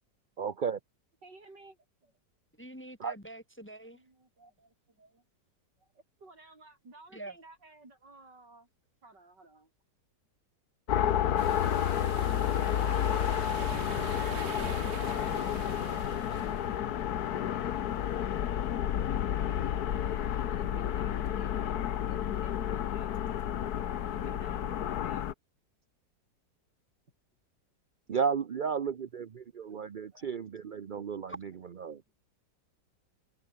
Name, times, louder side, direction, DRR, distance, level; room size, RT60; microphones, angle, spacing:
voice 1, 0.4-0.8 3.0-3.1 28.1-31.3 31.8-32.0, right 6 dB, 60° right, 0.5 m, -33 dB
voice 2, 1.2-2.1 3.9-5.2 5.8-5.9 6.2-8.7 9.0-9.7 12.5-16.6 20.4-21.8 22.0-23.2 24.1-25.2 29.6-30.3, right 2 dB, 80° right, 6.8 m, -55 dB
voice 3, 2.5-4.0 7.1-7.4 31.3-31.4, right 1 dB, 5° left, 1.7 m, -45 dB
sound 1, 10.9-25.3, left 10 dB, 65° left, 1.5 m, -31 dB
sound 2, 11.4-16.7, right 7 dB, 45° right, 1.3 m, -42 dB
omnidirectional pair, 1.8 m